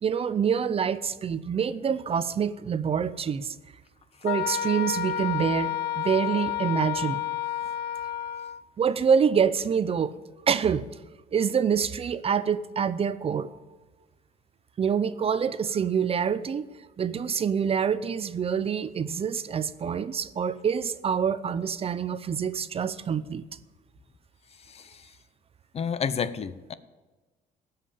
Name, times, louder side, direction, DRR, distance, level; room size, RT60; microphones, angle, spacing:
voice 1, 0.0-3.6 4.2-7.2 8.8-10.1 10.5-10.9 11.3-13.5 14.8-16.7 17.0-23.4, right 7 dB, 35° right, 15 dB, 0.6 m, -26 dB
Wind instrument woodwind instrument, 4.2-8.6, left 11 dB, 70° left, 0.5 m, -30 dB
voice 2, 24.7-25.0 25.7-26.7, left 7 dB, 40° left, 15 dB, 0.7 m, -30 dB
17.0 x 5.7 x 8.5 m, 1.2 s
cardioid pair, 110°, 17 cm